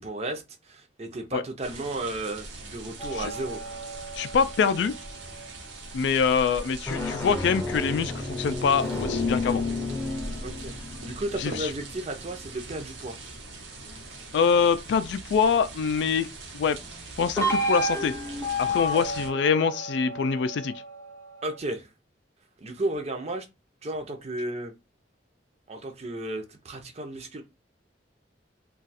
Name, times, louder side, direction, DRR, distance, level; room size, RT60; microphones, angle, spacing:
voice 1, 0.0-3.6 10.4-10.7 11.0-13.2 21.4-21.9 22.6-23.5 23.8-24.7 25.7-27.4, right 2 dB, 35° right, 0.6 m, -33 dB
sound 1, 1.6-19.3, right 2 dB, 75° right, 0.9 m, -42 dB
sound 2, 3.0-5.6 6.7-13.5 17.4-21.6, left 1 dB, 15° left, 0.6 m, -32 dB
voice 2, 4.2-4.9 5.9-9.6 11.4-11.7 14.3-16.8 17.2-18.1 18.6-20.7, left 6 dB, 70° left, 0.3 m, -25 dB
2.4 x 2.3 x 4.0 m
head